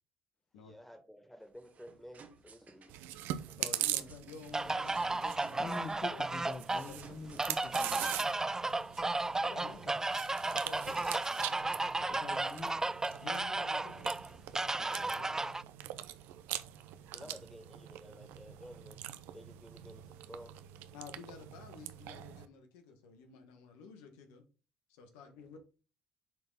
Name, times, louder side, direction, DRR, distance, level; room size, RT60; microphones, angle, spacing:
voice 1, 0.6-3.2 14.8-15.2 17.1-20.7, equal, 5° left, 2.0 m, -53 dB
sound 1, 1.4-8.0, right 5 dB, 50° right, 1.3 m, -59 dB
Chewing mastication, 2.9-22.5, right 13 dB, 80° right, 0.5 m, -43 dB
voice 2, 3.6-7.4 9.4-10.0 10.6-11.1 13.2-14.1 15.2-15.3 17.1-17.4 20.9-24.4 24.9-25.6, left 5 dB, 85° left, 1.4 m, -51 dB
sound 2, 4.5-15.6, right 2 dB, 15° right, 0.3 m, -34 dB
voice 3, 5.6-8.2 12.1-12.8 14.7-15.1, left 4 dB, 50° left, 0.8 m, -46 dB
7.3 x 3.9 x 4.0 m
supercardioid pair, 65°, 3 cm